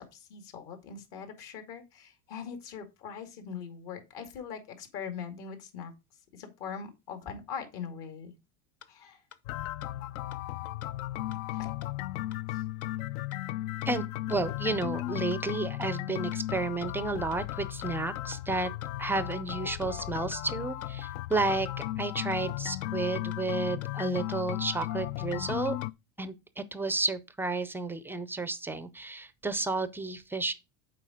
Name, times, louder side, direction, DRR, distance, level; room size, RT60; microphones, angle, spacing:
voice 1, 0.0-5.9 6.3-8.3 8.9-9.2 10.6-10.7 11.5-11.7 12.5-12.6, left 6 dB, 60° left, 2.3 m, -42 dB
sound 1, 8.8-8.9 9.3-9.4 9.8-9.9 10.3-10.4 10.8-10.9 11.3-11.4 11.8-11.9 12.3-12.4 12.8-12.9 13.3-13.4 13.8-13.9 14.3-14.4 14.8-14.9 15.3-15.4 15.8-15.9 16.3-16.4 16.8-16.9 17.3-17.4 17.8-17.9 18.3-18.4 18.8-18.9 19.3-19.4 19.8-19.9 20.3-20.4 20.8-20.9 21.3-21.4 21.8-21.9 22.3-22.4 22.8-22.9 23.3-23.4 23.8-23.9 24.3-24.4 24.8-24.9 25.3-25.4 25.8-25.9, left 7 dB, 35° left, 0.8 m, -51 dB
sound 2, 9.4-25.9, left 15 dB, 75° left, 0.5 m, -35 dB
voice 2, 13.9-18.7 19.0-21.7 22.0-25.8 26.2-30.5, right 3 dB, 5° right, 0.3 m, -32 dB
7.6 x 4.8 x 5.0 m
supercardioid pair, 120°, 43 cm